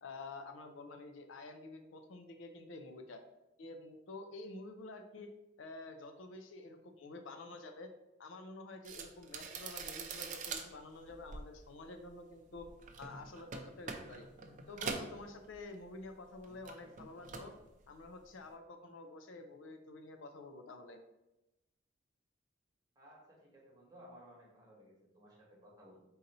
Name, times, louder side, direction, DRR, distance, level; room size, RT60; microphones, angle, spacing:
voice 1, 0.0-3.2 3.6-5.3 5.6-7.9 8.2-12.7 13.0-14.3 14.7-17.5 17.9-21.0, left 2 dB, 75° left, 6 dB, 0.5 m, -49 dB
sound 1, 8.8-16.1 16.3-17.6 17.9-18.3, right 5 dB, 40° right, 0.4 m, -45 dB
voice 2, 22.9-26.0, equal, 20° right, -4 dB, 1.2 m, -58 dB
3.9 x 2.7 x 4.1 m, 0.95 s
head